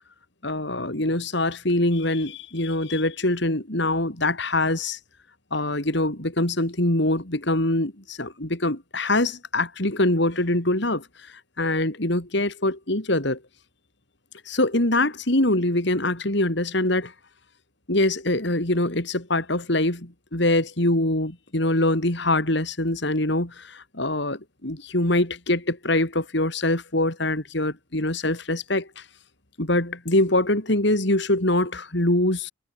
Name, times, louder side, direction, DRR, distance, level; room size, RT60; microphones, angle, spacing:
voice 1, 0.4-5.0 5.5-13.4 14.4-17.1 17.9-29.0 29.6-32.5, left 1 dB, 55° left, 3.1 m, -24 dB
head